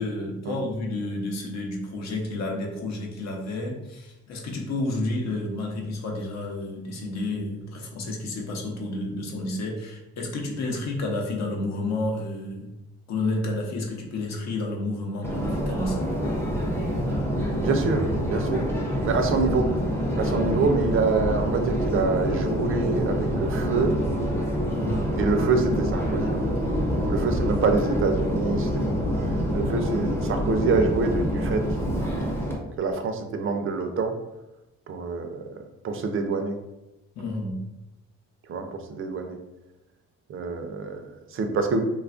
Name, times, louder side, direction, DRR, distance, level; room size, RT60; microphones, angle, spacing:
voice 1, 0.0-12.7 13.1-16.0 19.0-19.2 20.2-20.5 24.7-25.2 37.2-37.6, left 2 dB, 60° left, 1 dB, 0.8 m, -30 dB
Subway metro underground, 15.2-32.6, equal, 10° left, 0.6 m, -26 dB
voice 2, 17.6-18.7 19.0-19.7 20.1-23.9 25.2-26.4 27.1-28.9 29.2-32.3 32.8-34.2 34.9-35.4 35.8-36.6 38.5-39.4 40.3-41.9, right 4 dB, 45° right, 6 dB, 0.5 m, -26 dB
3.1 x 2.3 x 2.4 m, 0.96 s
cardioid pair, 90°, 30 cm